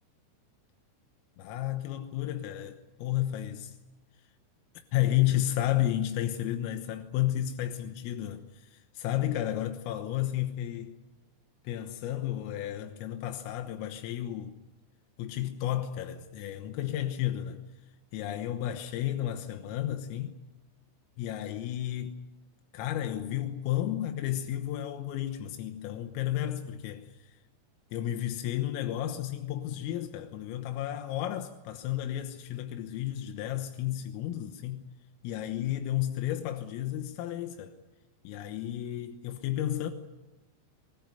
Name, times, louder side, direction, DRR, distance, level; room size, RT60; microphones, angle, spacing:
voice 1, 1.4-3.8 4.9-11.0 11.7-14.6 15.2-17.6 18.1-20.4 21.2-22.2 22.7-27.4 27.9-34.9 35.2-37.7 38.3-39.9, left 12 dB, 90° left, 3.9 m, -32 dB
24.0 x 20.0 x 9.1 m
omnidirectional pair, 5.8 m